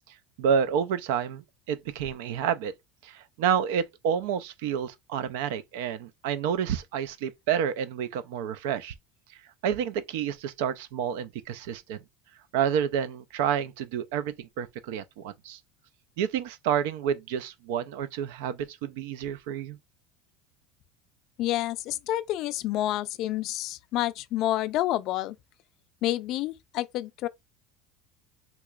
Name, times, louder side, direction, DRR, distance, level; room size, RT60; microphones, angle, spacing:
voice 1, 0.4-2.7 3.0-8.9 9.6-12.0 12.5-15.6 16.2-19.8, right 8 dB, 80° right, 0.4 m, -29 dB
voice 2, 21.4-25.4 26.0-27.3, left 14 dB, 55° left, 0.3 m, -29 dB
3.5 x 2.9 x 2.3 m
supercardioid pair, 130°, 0 cm